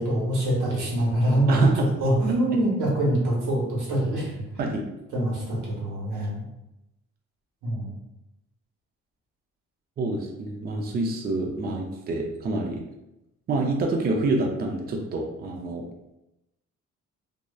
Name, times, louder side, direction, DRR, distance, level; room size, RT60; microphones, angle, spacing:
voice 1, 0.0-4.6 5.1-6.4 7.6-7.9, right 1 dB, 90° right, -4 dB, 1.0 m, -24 dB
voice 2, 1.5-1.9 4.6-4.9 10.0-12.8 13.5-15.8, right 2 dB, 35° right, 1 dB, 0.4 m, -27 dB
2.7 x 2.0 x 2.3 m, 0.91 s
cardioid pair, 95°, 29 cm